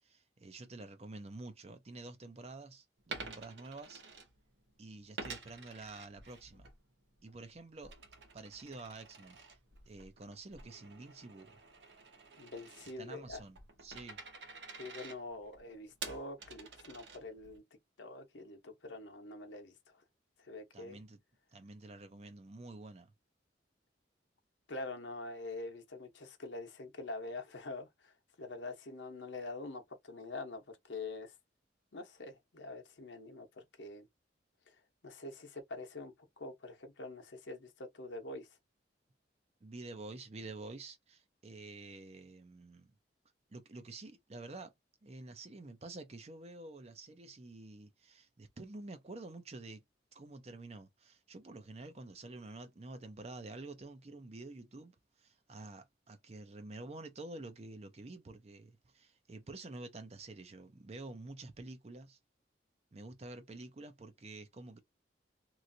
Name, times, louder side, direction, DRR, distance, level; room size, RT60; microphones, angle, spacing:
voice 1, 0.0-4.0 4.8-6.7 7.2-7.9 8.3-9.4 9.9-11.6 13.0-14.2 20.7-21.2 21.5-23.1 39.6-42.9 43.5-44.7 45.0-49.8 50.1-62.2 62.9-64.8, right 2 dB, 35° right, 0.5 m, -49 dB
Coin (dropping), 3.0-4.7 5.2-6.7 7.1-17.6, right 4 dB, 75° right, 0.9 m, -49 dB
voice 2, 12.4-13.4 14.8-17.6 18.0-19.7 20.4-21.0 24.7-28.1 28.4-31.3 31.9-34.1 35.0-38.5, left 2 dB, 80° left, 0.8 m, -45 dB
3.0 x 2.5 x 2.6 m
head